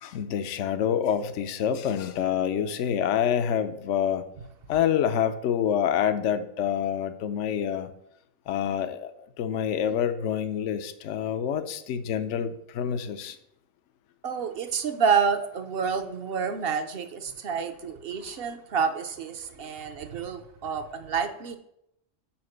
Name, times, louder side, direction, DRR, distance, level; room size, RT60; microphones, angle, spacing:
voice 1, 0.0-4.2 4.7-7.9 8.5-9.1 9.4-13.4, left 9 dB, 75° left, 10 dB, 0.9 m, -27 dB
voice 2, 14.2-21.6, right 6 dB, 55° right, 8 dB, 0.8 m, -28 dB
5.8 x 5.0 x 6.4 m, 0.79 s
omnidirectional pair, 1.3 m